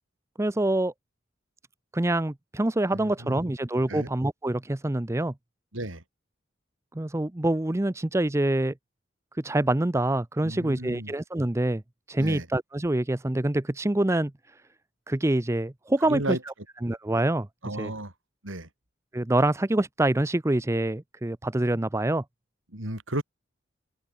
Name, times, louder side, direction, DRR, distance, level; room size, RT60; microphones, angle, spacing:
voice 1, 0.4-0.9 1.9-5.3 6.9-8.7 9.4-11.8 12.1-14.3 15.1-16.4 16.8-17.5 17.8-17.9 19.1-22.2, right 1 dB, 15° right, 0.6 m, -25 dB
voice 2, 2.9-3.5 3.9-4.1 5.7-6.0 10.4-11.1 12.2-12.5 16.1-16.4 17.6-18.1 18.4-18.7 22.7-23.2, right 1 dB, 80° right, 5.7 m, -33 dB
open air
head